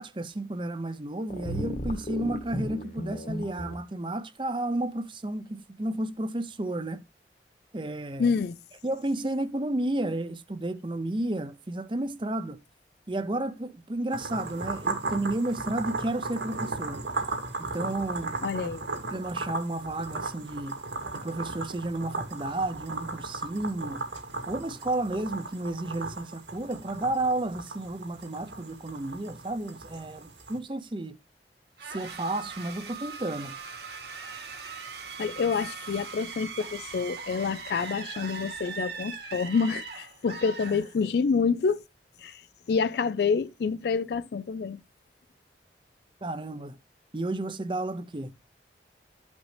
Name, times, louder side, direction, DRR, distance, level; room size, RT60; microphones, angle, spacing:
voice 1, 0.0-7.0 7.7-8.3 8.8-12.6 13.1-17.0 17.6-18.7 19.1-20.8 21.1-24.0 24.5-31.1 31.9-33.6 46.2-46.8 47.1-48.3, right 1 dB, 25° right, 0.6 m, -32 dB
sound 1, 1.3-3.7, equal, 45° left, 1.4 m, -34 dB
voice 2, 8.2-8.6 18.4-18.9 35.2-41.8 42.2-44.8, left 5 dB, 65° left, 0.4 m, -28 dB
sound 2, 14.1-30.6, right 3 dB, 90° right, 2.1 m, -36 dB
sound 3, 31.8-41.3, right 5 dB, 65° right, 2.0 m, -40 dB
13.0 x 5.2 x 3.2 m
head